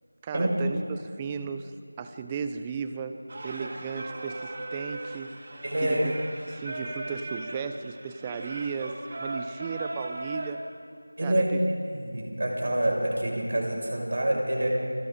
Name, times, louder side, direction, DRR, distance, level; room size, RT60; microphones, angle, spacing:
voice 1, 0.2-1.7 2.0-3.2 3.4-5.4 5.8-6.1 6.5-10.6 11.2-11.6, right 6 dB, 10° right, 9 dB, 0.7 m, -35 dB
Singing, 3.3-10.5, right 2 dB, 35° right, 2.2 m, -38 dB
voice 2, 5.6-6.0 11.2-14.7, right 1 dB, 55° right, -1 dB, 6.0 m, -27 dB
28.5 x 24.0 x 3.9 m, 2.6 s
figure-of-eight pair, 170°, 0 cm